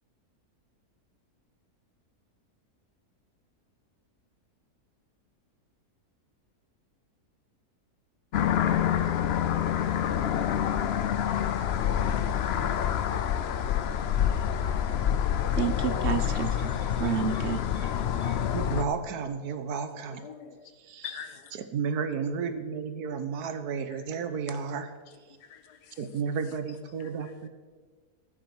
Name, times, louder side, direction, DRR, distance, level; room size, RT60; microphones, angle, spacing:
sound 1, 8.3-18.8, left 9 dB, 60° left, 0.7 m, -27 dB
voice 1, 15.5-18.4, right 8 dB, 55° right, 9 dB, 0.9 m, -32 dB
voice 2, 18.5-20.3 20.8-21.1 21.5-24.9 26.0-27.5, right 6 dB, 75° right, 10 dB, 1.4 m, -32 dB
voice 3, 20.2-20.7 21.0-21.6 25.4-26.0 27.0-27.3, left 8 dB, 80° left, 9 dB, 1.6 m, -44 dB
15.0 x 10.0 x 4.8 m, 1.5 s
omnidirectional pair, 1.7 m